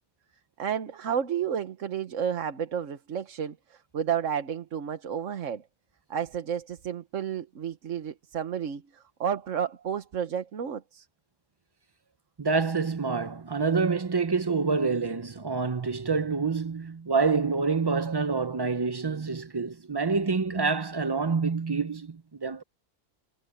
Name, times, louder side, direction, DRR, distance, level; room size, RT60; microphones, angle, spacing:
voice 1, 0.6-5.6 6.1-11.1, right 8 dB, 70° right, 1.4 m, -31 dB
voice 2, 12.4-22.6, right 4 dB, 40° right, 0.3 m, -27 dB
omnidirectional pair, 1.4 m